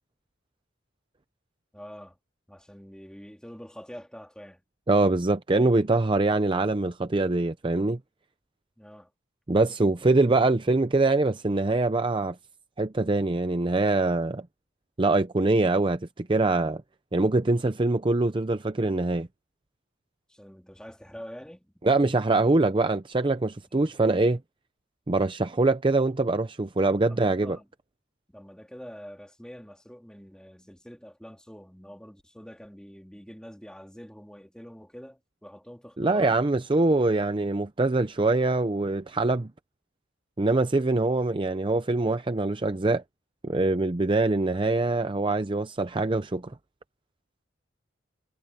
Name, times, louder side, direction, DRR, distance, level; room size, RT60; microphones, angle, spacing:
voice 1, 1.7-2.2 2.5-4.6 8.8-9.1 20.3-21.7 27.1-27.7 28.3-36.5, equal, 5° left, 3.3 m, -45 dB
voice 2, 4.9-8.0 9.5-12.4 12.8-14.4 15.0-16.8 17.1-19.3 21.8-24.4 25.1-27.6 36.0-39.5 40.4-43.0 43.4-46.5, right 2 dB, 25° right, 0.6 m, -24 dB
head